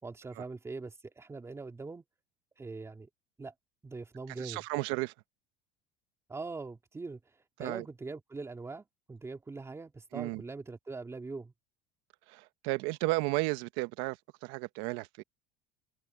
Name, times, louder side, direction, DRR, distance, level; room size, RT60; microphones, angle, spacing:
voice 1, 0.0-2.0 2.6-3.1 3.4-3.5 3.8-4.6 6.3-7.2 7.6-11.5, right 3 dB, 15° right, 3.0 m, -42 dB
voice 2, 4.4-5.1 7.6-7.8 10.1-10.4 12.3-14.2 14.4-15.2, right 21 dB, 75° right, 1.2 m, -33 dB
cardioid pair, 135°, 20 cm